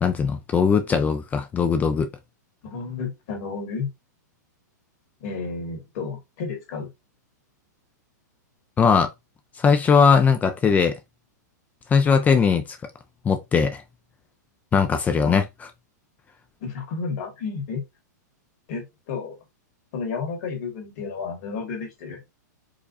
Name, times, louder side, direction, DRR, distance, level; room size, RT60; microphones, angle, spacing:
voice 1, 0.0-2.1 8.8-9.1 9.6-11.0 11.9-12.8 13.2-13.8 14.7-15.4, left 6 dB, 15° left, 0.4 m, -19 dB
voice 2, 2.6-3.9 5.2-6.9 15.2-15.4 16.6-17.8 18.7-19.4 19.9-22.2, left 4 dB, 55° left, 1.9 m, -32 dB
4.8 x 2.2 x 2.6 m
hypercardioid pair, 135°, 10 cm